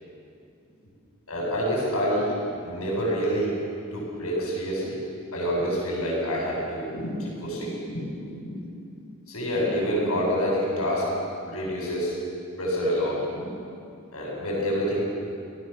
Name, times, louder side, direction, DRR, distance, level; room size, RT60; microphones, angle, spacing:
voice 1, 1.3-2.3 2.6-3.5 3.9-5.0 5.3-8.6 9.3-11.1 11.4-12.2 12.6-13.6 14.1-15.0, equal, 80° left, -5 dB, 7.9 m, -27 dB
28.5 x 18.5 x 7.2 m, 2.5 s
head